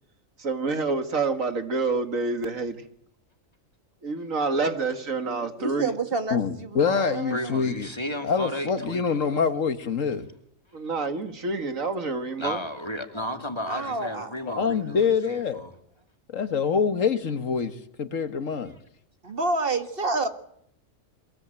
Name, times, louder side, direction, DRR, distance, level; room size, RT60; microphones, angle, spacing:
voice 1, 0.4-2.8 4.0-5.9 10.7-12.6, right 3 dB, 80° right, 2.4 m, -27 dB
voice 2, 5.6-7.5 13.7-14.3 14.6-14.7 19.2-20.3, right 3 dB, 45° right, 1.9 m, -29 dB
voice 3, 6.3-7.9 8.2-10.2 14.5-15.6 16.3-18.7, left 6 dB, 75° left, 1.8 m, -25 dB
voice 4, 7.3-9.5 12.4-15.7, equal, 20° left, 2.6 m, -34 dB
23.0 x 21.5 x 9.0 m
omnidirectional pair, 1.4 m